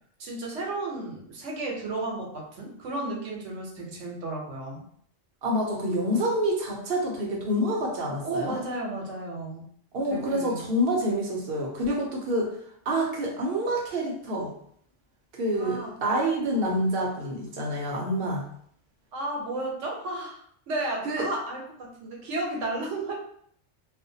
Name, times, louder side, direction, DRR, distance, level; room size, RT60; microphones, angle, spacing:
voice 1, 0.2-4.8 8.2-9.6 10.1-10.6 15.6-15.9 19.1-20.4 20.7-23.1, right 2 dB, 85° right, -1 dB, 1.0 m, -33 dB
voice 2, 5.4-8.5 9.9-12.6 12.9-14.5 15.3-18.5 21.0-21.3, equal, 60° right, -1 dB, 0.8 m, -27 dB
2.5 x 2.1 x 2.6 m, 0.64 s
omnidirectional pair, 1.2 m